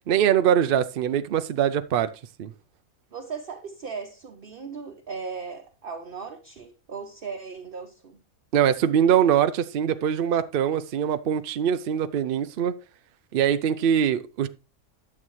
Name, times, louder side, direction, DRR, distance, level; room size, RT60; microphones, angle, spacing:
voice 1, 0.1-2.1 2.4-2.5 8.5-12.7 13.3-14.5, right 9 dB, 65° right, 0.5 m, -22 dB
voice 2, 3.1-8.2, right 5 dB, 45° right, 1.0 m, -37 dB
11.0 x 7.2 x 3.1 m
omnidirectional pair, 1.5 m